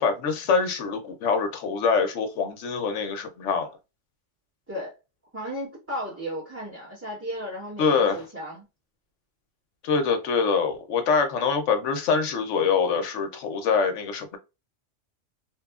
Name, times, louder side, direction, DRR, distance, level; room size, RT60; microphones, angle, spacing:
voice 1, 0.0-3.7 7.8-8.2 9.8-14.4, left 5 dB, 75° left, 1.0 m, -24 dB
voice 2, 5.3-8.6, equal, 10° right, 1.1 m, -34 dB
2.9 x 2.3 x 2.3 m
omnidirectional pair, 1.3 m